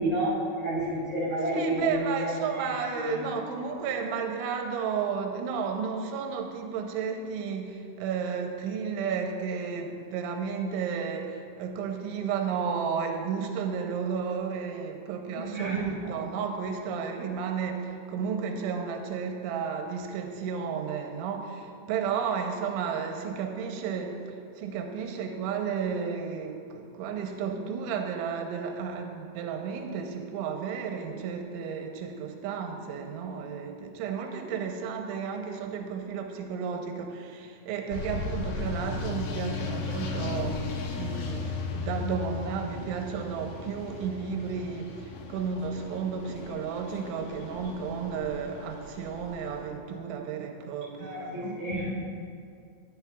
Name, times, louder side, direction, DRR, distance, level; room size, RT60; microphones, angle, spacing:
voice 1, 0.0-2.0 2.5-2.7 2.9-3.2 15.3-16.1 51.0-51.9, right 1 dB, 40° left, -10 dB, 2.3 m, -30 dB
voice 2, 1.5-51.6, right 6 dB, 80° right, 3 dB, 3.2 m, -33 dB
sound 1, 37.9-49.7, left 4 dB, 85° left, 2.0 m, -36 dB
15.0 x 9.6 x 2.4 m, 2.3 s
omnidirectional pair, 5.5 m